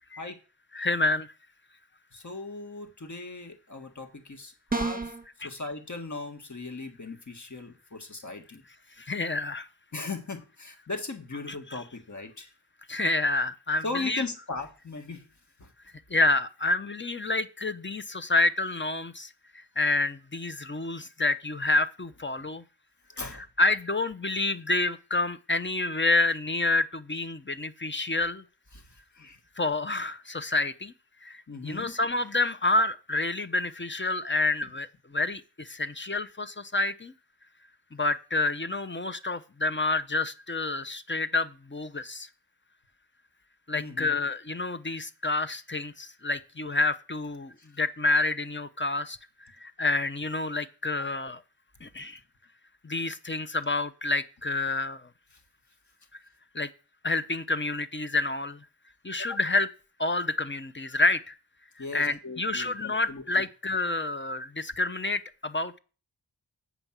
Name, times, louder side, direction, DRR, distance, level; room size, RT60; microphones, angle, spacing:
voice 1, 0.7-1.3 5.4-5.5 9.0-9.7 11.5-11.8 12.9-14.2 16.1-22.6 23.2-28.4 29.6-30.9 31.2-37.1 37.9-42.3 43.7-51.4 51.8-52.2 52.8-55.1 56.5-56.7 57.0-58.6 59.0-59.7 60.0-61.4 61.9-65.8, left 2 dB, 25° left, 12 dB, 0.8 m, -28 dB
voice 2, 2.1-5.1 5.4-8.6 9.9-12.5 13.8-15.3 15.6-15.7 23.2-23.4 28.7-28.8 29.2-29.4 31.5-31.9 43.7-44.1 61.8-63.2, left 3 dB, 45° left, 5 dB, 1.6 m, -38 dB
sound 1, 4.7-5.2, right 3 dB, 20° right, 1.1 m, -29 dB
8.3 x 5.2 x 7.4 m, 0.35 s
wide cardioid pair, 65°, 42 cm